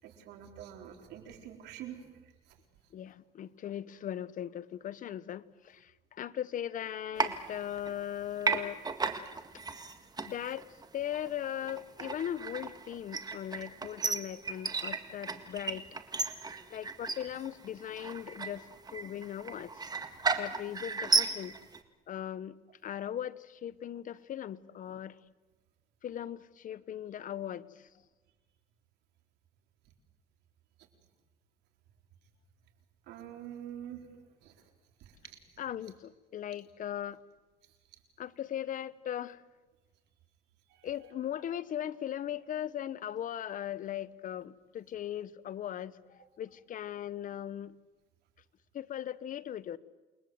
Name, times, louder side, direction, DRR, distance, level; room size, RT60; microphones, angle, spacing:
voice 1, 0.0-2.1 33.1-34.0 34.4-34.5 35.0-35.4 40.7-41.1, right 10 dB, 85° right, 4 dB, 4.0 m, -46 dB
voice 2, 2.9-8.8 10.2-10.7 10.9-16.0 16.7-19.8 20.4-21.5 22.1-22.6 22.8-25.2 26.0-27.9 35.6-37.2 38.2-39.4 40.8-47.8 48.7-49.8, left 10 dB, 50° left, 17 dB, 0.9 m, -39 dB
sound 1, 7.2-8.1 8.4-21.8, right 4 dB, 25° right, 1.9 m, -34 dB
28.5 x 21.0 x 7.9 m, 1.2 s
cardioid pair, 110°, 17 cm